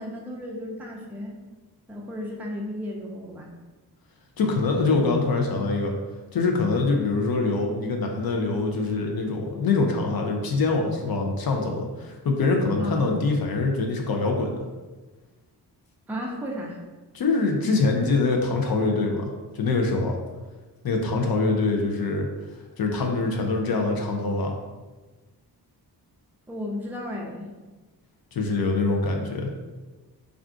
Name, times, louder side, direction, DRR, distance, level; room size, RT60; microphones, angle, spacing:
voice 1, 0.0-1.4 1.9-3.5 12.8-13.1 16.1-16.8 26.5-27.5, left 1 dB, 5° right, -2 dB, 0.4 m, -34 dB
voice 2, 4.4-5.9 6.3-14.6 17.1-19.3 19.5-20.2 20.8-22.3 22.8-24.6 28.3-29.5, left 3 dB, 60° left, 2 dB, 0.5 m, -24 dB
2.4 x 2.3 x 3.6 m, 1.2 s
wide cardioid pair, 110°, 40 cm